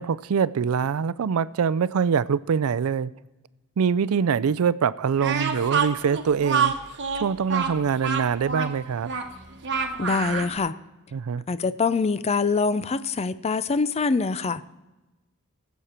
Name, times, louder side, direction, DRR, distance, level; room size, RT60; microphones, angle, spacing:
voice 1, 0.0-3.1 3.8-6.7 7.2-9.1 11.1-11.4, right 6 dB, 75° right, 18 dB, 0.4 m, -24 dB
Speech, 5.2-10.5, right 6 dB, 55° right, 1.1 m, -27 dB
voice 2, 10.0-10.8 11.5-14.6, left 4 dB, 30° left, 15 dB, 0.4 m, -24 dB
18.5 x 8.2 x 4.4 m, 1.1 s
head